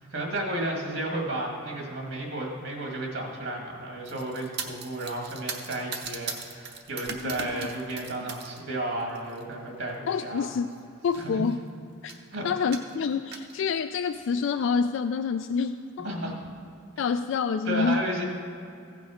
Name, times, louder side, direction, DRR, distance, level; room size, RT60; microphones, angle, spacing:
voice 1, 0.1-10.5 11.2-11.4 12.3-12.5 16.0-16.3 17.7-18.2, right 1 dB, 75° right, 0 dB, 2.0 m, -33 dB
sound 1, 4.0-8.6 9.0-9.4 10.3-10.4 10.7-10.8 11.0-11.6 12.1-12.3 12.7-13.5, right 5 dB, 55° right, 0.9 m, -38 dB
voice 2, 7.2-7.7 10.1-10.7 11.0-11.6 12.0-12.1 12.4-16.1 17.0-18.0, left 5 dB, 65° left, 8 dB, 0.3 m, -27 dB
15.5 x 6.1 x 5.0 m, 2.6 s
head